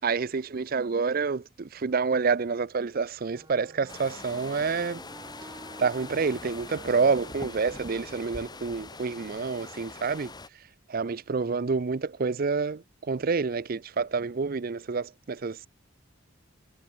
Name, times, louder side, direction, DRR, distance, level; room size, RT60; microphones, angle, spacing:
voice 1, 0.0-5.0 5.8-10.3 10.9-15.7, right 5 dB, 45° right, 0.5 m, -28 dB
Wind instrument woodwind instrument, 3.3-8.6, right 1 dB, 20° right, 4.0 m, -51 dB
sound 1, 3.9-10.5, left 3 dB, 20° left, 1.5 m, -43 dB
head